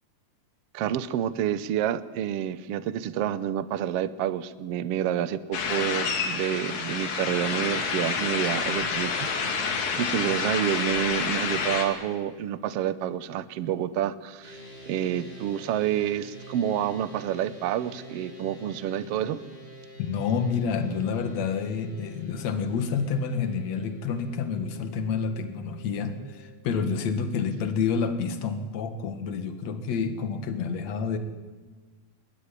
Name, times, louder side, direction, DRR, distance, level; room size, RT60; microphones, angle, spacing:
voice 1, 0.7-14.6 14.9-19.4, right 10 dB, 70° right, 14 dB, 1.4 m, -29 dB
sound 1, 5.5-11.9, left 5 dB, 90° left, 4.3 m, -28 dB
sound 2, 14.4-26.6, right 1 dB, 15° left, 7.2 m, -47 dB
voice 2, 20.0-31.2, left 5 dB, 55° left, 9 dB, 2.7 m, -29 dB
20.5 x 20.5 x 10.0 m, 1.4 s
omnidirectional pair, 3.9 m